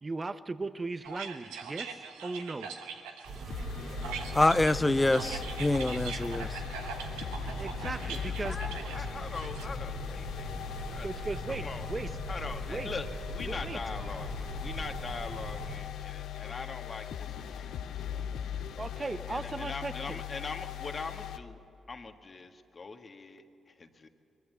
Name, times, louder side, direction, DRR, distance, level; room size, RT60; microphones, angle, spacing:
voice 1, 0.0-2.7 7.6-8.6 10.9-12.2 12.7-12.9 13.4-13.8 18.8-20.2, right 3 dB, 35° right, 12 dB, 1.0 m, -37 dB
sound 1, 1.0-9.6, right 6 dB, 90° right, 1.2 m, -42 dB
sound 2, 3.2-15.7, right 3 dB, 65° right, 4.3 m, -41 dB
sound 3, 3.5-21.4, left 10 dB, 80° left, 0.6 m, -39 dB
voice 2, 4.3-6.6, left 2 dB, 20° left, 15 dB, 0.5 m, -26 dB
voice 3, 8.0-11.1 11.5-11.9 12.3-18.3 19.3-21.6 21.9-23.4 23.8-24.1, left 4 dB, 45° left, 6 dB, 1.6 m, -42 dB
22.0 x 14.5 x 8.2 m, 3.0 s
hypercardioid pair, 45°, 0 cm